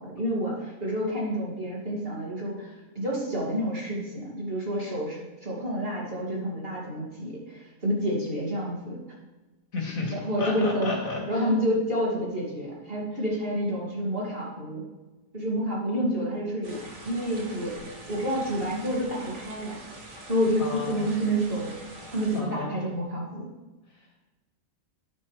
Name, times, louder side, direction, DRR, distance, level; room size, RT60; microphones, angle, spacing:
voice 1, 0.0-9.0 10.1-10.9 11.3-14.8 15.3-17.8 18.1-19.8 20.3-21.7 22.1-23.5, equal, 45° right, -4 dB, 2.9 m, -29 dB
voice 2, 9.7-11.4 20.6-21.1 22.0-22.8, left 3 dB, 75° left, 0 dB, 2.6 m, -33 dB
sound 1, 16.6-22.4, right 1 dB, 60° right, 2.0 m, -44 dB
9.9 x 9.4 x 3.4 m, 1.1 s
omnidirectional pair, 1.4 m